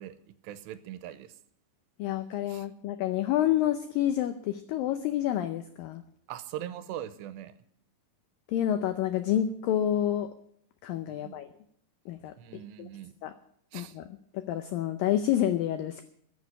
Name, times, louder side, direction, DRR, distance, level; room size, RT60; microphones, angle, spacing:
voice 1, 0.0-1.3 2.5-2.7 6.3-7.5 11.0-11.4 12.4-13.1 13.7-14.0, right 11 dB, 80° right, 13 dB, 2.9 m, -41 dB
voice 2, 2.0-6.0 8.5-10.3 10.8-11.5 12.1-12.3 12.8-12.9 13.2-13.3 13.7-14.0 14.3-16.0, left 11 dB, 85° left, 9 dB, 2.0 m, -28 dB
14.5 x 7.3 x 9.7 m, 0.67 s
omnidirectional pair, 5.0 m